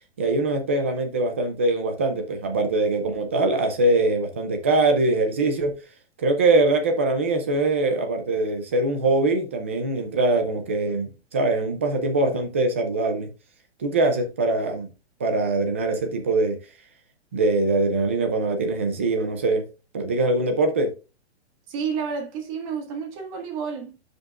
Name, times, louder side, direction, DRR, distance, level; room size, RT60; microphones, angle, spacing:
voice 1, 0.2-5.7 6.2-13.3 13.8-14.9 15.2-16.6 17.3-19.7 19.9-20.9, right 2 dB, 10° right, 0.4 m, -22 dB
voice 2, 21.7-24.0, right 6 dB, 30° right, 1.9 m, -30 dB
12.0 x 5.2 x 2.4 m
hypercardioid pair, 165°, 35 cm